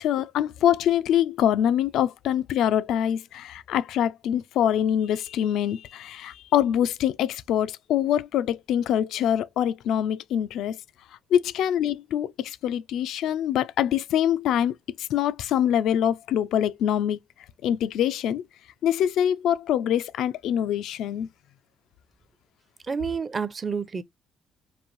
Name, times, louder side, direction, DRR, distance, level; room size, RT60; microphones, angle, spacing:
voice 1, 0.0-10.8 11.3-14.7 15.0-17.2 17.6-18.4 18.8-21.3, left 10 dB, 85° left, 0.3 m, -24 dB
voice 2, 22.8-24.0, right 5 dB, 35° right, 0.6 m, -29 dB
5.3 x 2.6 x 2.9 m
cardioid pair, 90°, 0 cm